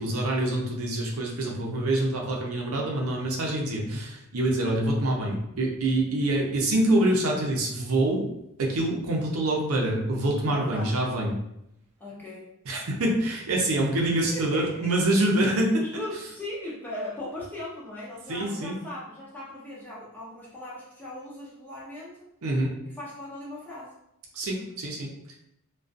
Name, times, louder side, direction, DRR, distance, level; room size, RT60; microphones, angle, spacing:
voice 1, 0.0-8.3 8.6-11.3 12.7-15.8 18.3-18.8 22.4-22.7 24.3-25.4, right 1 dB, 80° right, -1 dB, 0.6 m, -26 dB
voice 2, 10.5-11.0 12.0-12.5 14.0-14.9 15.8-22.3 22.9-23.9, left 1 dB, 10° left, -7 dB, 0.4 m, -38 dB
2.4 x 2.2 x 2.5 m, 0.81 s
head